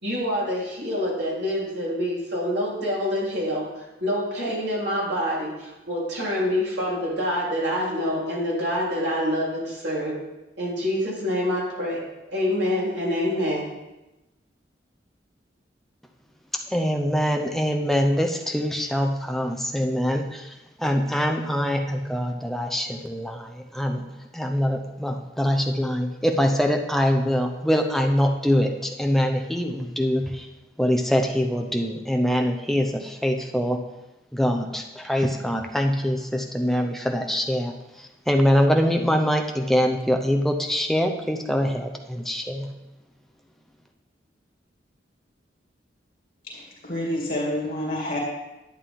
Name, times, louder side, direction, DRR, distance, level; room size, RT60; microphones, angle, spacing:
voice 1, 0.0-10.2 10.6-12.0 12.3-13.6, equal, 70° right, -5 dB, 3.6 m, -26 dB
voice 2, 16.5-24.0 24.3-30.5 30.8-33.8 34.3-42.7, equal, ahead, 4 dB, 0.7 m, -24 dB
voice 3, 46.4-48.2, left 1 dB, 55° left, -5 dB, 2.4 m, -28 dB
11.0 x 8.7 x 3.6 m, 1.0 s
head